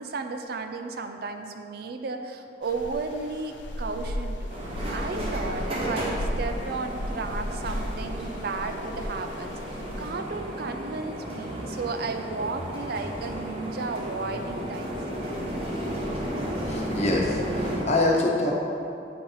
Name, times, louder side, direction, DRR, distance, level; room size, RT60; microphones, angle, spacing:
voice 1, 0.0-4.5 4.9-15.0, right 3 dB, 55° right, 6 dB, 0.4 m, -34 dB
sound 1, 2.6-10.1, equal, 80° left, 0.4 m, -35 dB
sound 2, 4.5-17.8, equal, 30° right, 0.9 m, -33 dB
voice 2, 16.7-18.5, left 2 dB, 35° left, -3 dB, 0.9 m, -25 dB
8.5 x 2.8 x 5.5 m, 2.7 s
head